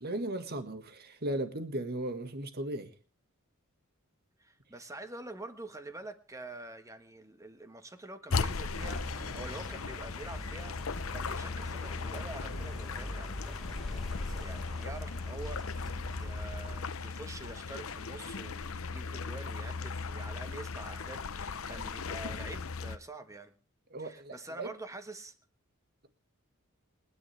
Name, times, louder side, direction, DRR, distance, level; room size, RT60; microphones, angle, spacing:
voice 1, 0.0-2.9 23.9-24.7, right 1 dB, 50° right, 1.8 m, -36 dB
voice 2, 4.4-23.5 24.0-25.3, right 2 dB, 15° right, 1.5 m, -46 dB
sound 1, 8.3-23.0, left 4 dB, 75° left, 0.8 m, -37 dB
sound 2, 8.7-16.8, left 1 dB, ahead, 3.7 m, -43 dB
28.5 x 10.0 x 3.5 m
head